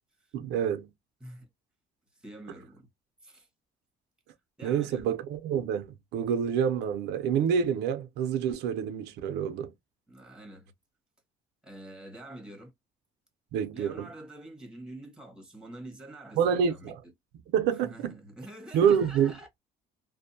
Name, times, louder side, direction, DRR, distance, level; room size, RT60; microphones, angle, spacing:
voice 1, 0.3-0.9 4.6-9.7 13.5-14.1 16.4-17.0 17.5-18.2 18.7-19.3, right 8 dB, 85° right, 0.5 m, -27 dB
voice 2, 2.2-2.9 3.2-3.5 4.6-5.1 10.1-10.7 11.6-12.7 13.7-17.1 17.7-19.5, right 1 dB, 5° right, 1.1 m, -46 dB
2.5 x 2.1 x 2.6 m
cardioid pair, 110°, 17 cm